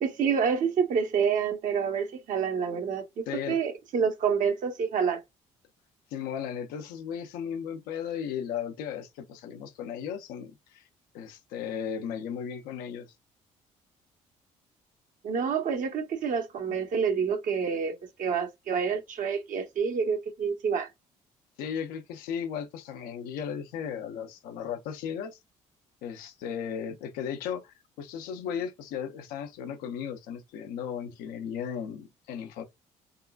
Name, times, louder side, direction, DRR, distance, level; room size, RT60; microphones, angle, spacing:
voice 1, 0.0-5.2 15.2-20.9, right 6 dB, 60° right, 1.0 m, -28 dB
voice 2, 3.3-3.6 6.1-10.8 11.1-13.1 21.6-25.4 26.0-32.6, left 8 dB, 75° left, 0.6 m, -36 dB
3.6 x 2.2 x 2.3 m
hypercardioid pair, 60°, 15 cm